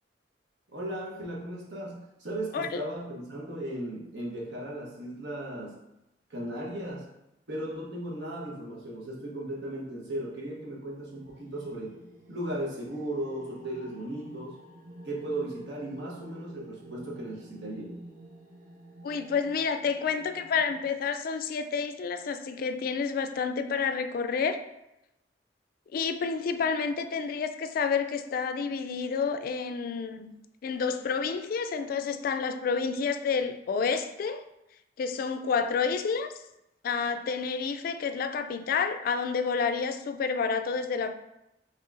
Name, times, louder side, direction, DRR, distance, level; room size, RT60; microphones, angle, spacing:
voice 1, 0.7-5.8 6.3-7.1 7.5-12.0 12.3-14.6 15.0-18.0, right 1 dB, 85° right, 1.1 m, -36 dB
sound 1, 10.8-20.9, right 1 dB, 45° right, 0.9 m, -51 dB
voice 2, 19.0-24.6 25.9-30.3 30.6-34.4 35.0-36.3 36.8-41.1, left 5 dB, 55° left, 0.3 m, -29 dB
5.4 x 3.0 x 2.5 m
head